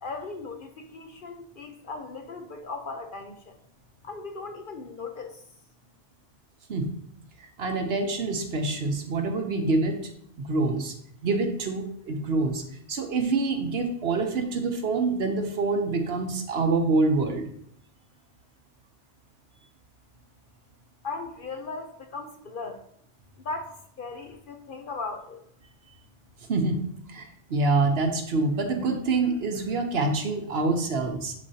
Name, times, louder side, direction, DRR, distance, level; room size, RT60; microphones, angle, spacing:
voice 1, 0.0-3.6 4.0-5.4 21.0-22.8 23.4-25.4, left 3 dB, 50° left, 5 dB, 0.8 m, -37 dB
voice 2, 7.4-10.1 10.4-10.9 11.2-12.6 12.9-17.4 26.5-31.3, right 3 dB, 60° right, 5 dB, 1.0 m, -26 dB
10.5 x 4.4 x 2.8 m, 0.68 s
omnidirectional pair, 1.2 m